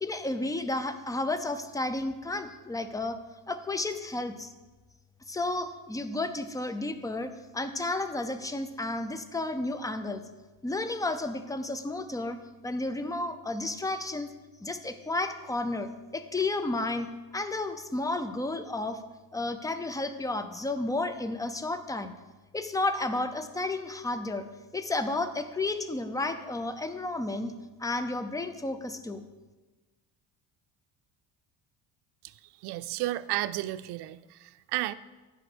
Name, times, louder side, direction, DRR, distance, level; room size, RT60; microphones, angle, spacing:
voice 1, 0.0-3.2 3.5-4.5 5.3-10.2 10.6-12.4 12.6-14.3 14.6-17.1 17.3-19.0 19.3-22.1 22.5-24.5 24.7-27.5 27.8-29.2, left 2 dB, 10° left, 9 dB, 0.5 m, -32 dB
voice 2, 32.6-34.9, right 16 dB, 75° right, 15 dB, 0.5 m, -32 dB
9.9 x 5.0 x 6.1 m, 1.2 s
cardioid pair, 120°, 39 cm